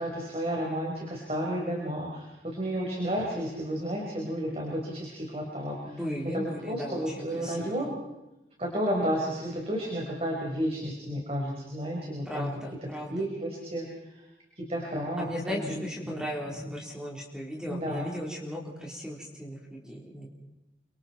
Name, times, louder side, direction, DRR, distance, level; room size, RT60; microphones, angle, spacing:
voice 1, 0.0-6.0 6.3-7.9 8.6-12.5 13.1-14.3 14.6-16.3 16.6-16.7 17.7-18.1, equal, 35° right, -2 dB, 5.1 m, -32 dB
voice 2, 5.8-7.9 12.3-13.3 15.2-20.3, equal, 5° right, -2 dB, 4.2 m, -37 dB
30.0 x 26.0 x 4.6 m, 0.94 s
head